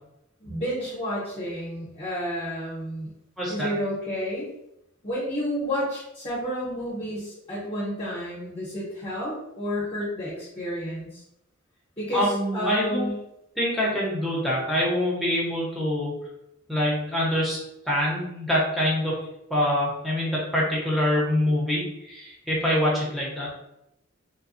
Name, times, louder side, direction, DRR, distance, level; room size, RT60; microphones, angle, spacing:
voice 1, 0.4-3.1 3.5-4.5 5.0-11.2 12.0-13.2, equal, 30° left, -9 dB, 0.9 m, -30 dB
voice 2, 3.4-3.7 12.1-13.1 13.6-16.1 16.7-17.6 17.8-19.2 19.5-23.5, left 1 dB, ahead, -6 dB, 0.8 m, -25 dB
3.2 x 2.2 x 2.5 m, 0.83 s
head